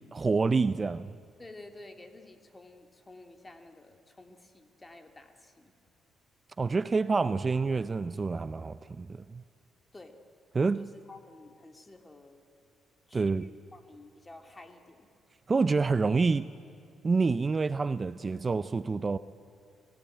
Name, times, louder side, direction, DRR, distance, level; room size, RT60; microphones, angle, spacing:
voice 1, 0.1-1.1 6.6-9.4 10.5-10.9 13.1-13.5 15.5-16.5 17.0-19.2, right 4 dB, 30° right, 15 dB, 0.5 m, -27 dB
voice 2, 1.4-5.7 9.9-10.2 10.8-12.5 13.1-15.1, left 2 dB, 20° left, 6 dB, 2.3 m, -51 dB
25.0 x 16.5 x 9.0 m, 2.5 s
cardioid pair, 90°, 0 cm